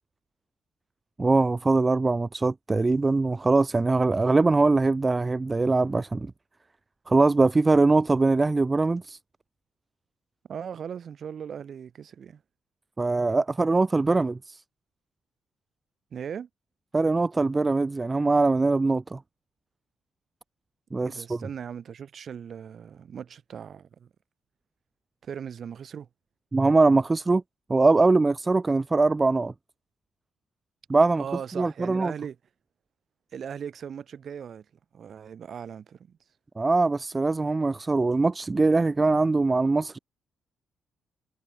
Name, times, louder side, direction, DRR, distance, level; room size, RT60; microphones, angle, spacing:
voice 1, 1.2-6.3 7.1-9.2 13.0-14.6 16.9-19.2 20.9-21.4 26.5-27.4 27.7-29.5 30.9-31.2 31.5-32.1 36.6-40.0, right 3 dB, 20° right, 0.6 m, -22 dB
voice 2, 10.5-12.4 16.1-16.5 21.0-24.1 25.2-26.1 31.2-32.4 33.3-34.7 34.9-36.2, right 7 dB, 55° right, 4.2 m, -38 dB
cardioid pair, 90°, 0 cm